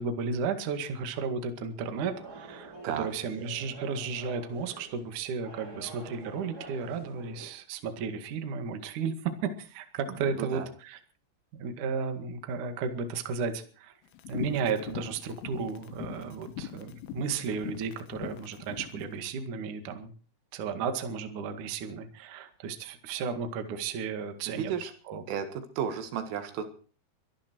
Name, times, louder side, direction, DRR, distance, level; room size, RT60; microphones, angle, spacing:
voice 1, 0.0-11.0 11.5-13.9 14.3-20.1 20.5-25.2, right 5 dB, 50° right, 7 dB, 2.7 m, -34 dB
sound 1, 1.9-7.5, right 3 dB, 30° right, 2.1 m, -47 dB
voice 2, 10.1-10.7 24.5-24.9 25.3-26.7, right 8 dB, 75° right, 8 dB, 4.2 m, -34 dB
sound 2, 14.2-19.0, left 11 dB, 75° left, 3.9 m, -41 dB
23.5 x 13.0 x 4.6 m, 0.42 s
omnidirectional pair, 5.9 m